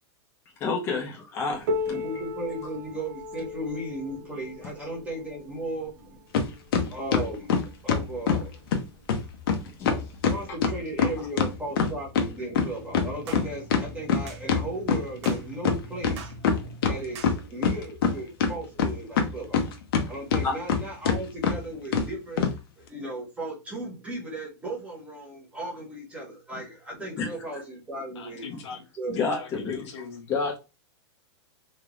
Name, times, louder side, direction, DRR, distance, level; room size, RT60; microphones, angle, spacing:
voice 1, 0.6-2.0 9.8-9.9 20.4-20.5 27.2-27.3 28.5-28.6 29.1-29.9 30.3-30.6, left 4 dB, 15° left, 0.7 m, -29 dB
Piano, 1.7-7.0 7.9-8.0 8.4-8.5 9.3-9.4 10.5-10.6, left 2 dB, 40° right, 0.5 m, -35 dB
voice 2, 1.9-6.2 6.9-8.6 10.2-19.8 20.1-22.4 22.8-28.4 29.0-29.2, right 1 dB, 10° right, 0.9 m, -36 dB
sound 1, 6.3-6.5 6.7-8.4 8.7-8.8 9.1-9.2 9.5-9.6 9.9-12.3 12.6-15.4 15.6-15.7 16.0-17.0 17.2-18.1 18.4-20.0 20.3-20.8 21.1-21.2 21.4-21.6 21.9-22.1 22.4-22.5, left 6 dB, 55° left, 0.7 m, -23 dB
sound 2, 13.3-13.5 14.3-14.4 15.2-15.5 16.2-16.4 17.1-17.4, right 6 dB, 75° right, 0.8 m, -42 dB
voice 3, 28.2-28.8 29.1-30.3, left 6 dB, 80° left, 1.1 m, -41 dB
3.3 x 2.9 x 2.4 m
supercardioid pair, 170°, 15 cm